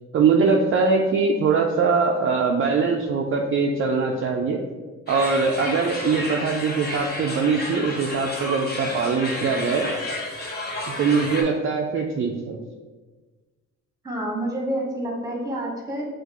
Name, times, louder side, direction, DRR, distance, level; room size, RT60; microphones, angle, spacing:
voice 1, 0.1-4.6 5.1-9.9 10.9-12.6, right 4 dB, 45° right, 1 dB, 0.4 m, -22 dB
sound 1, 5.1-11.4, left 1 dB, 30° left, 1.0 m, -31 dB
voice 2, 14.0-16.1, right 1 dB, 10° right, -1 dB, 1.2 m, -28 dB
5.8 x 2.5 x 3.0 m, 1.3 s
cardioid pair, 90°, 30 cm